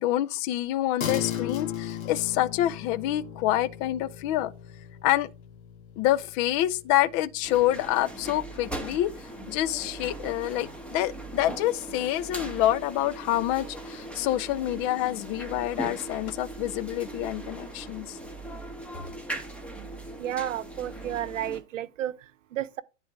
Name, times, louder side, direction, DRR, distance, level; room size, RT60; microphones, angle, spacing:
voice 1, 0.0-4.5 5.0-5.3 6.0-9.1 9.5-18.2, left 14 dB, 30° left, 0.5 m, -27 dB
sound 1, 1.0-10.7, left 10 dB, 80° left, 1.8 m, -38 dB
sound 2, 7.4-21.6, right 2 dB, 5° left, 1.6 m, -39 dB
voice 2, 20.2-22.8, right 12 dB, 70° right, 0.9 m, -32 dB
10.0 x 4.0 x 4.6 m
hypercardioid pair, 115°, 39 cm